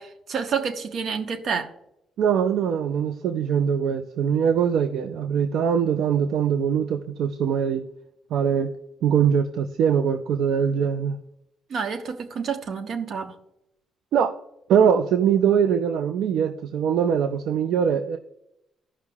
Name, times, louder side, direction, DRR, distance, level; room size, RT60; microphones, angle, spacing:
voice 1, 0.0-1.7 11.7-13.4, right 6 dB, 60° right, 6 dB, 1.1 m, -29 dB
voice 2, 2.2-7.8 8.3-8.7 9.0-11.2 14.1-14.3 14.7-18.2, right 7 dB, 80° right, 7 dB, 0.5 m, -22 dB
15.0 x 5.6 x 2.4 m, 0.82 s
cardioid pair, 90°, 0 cm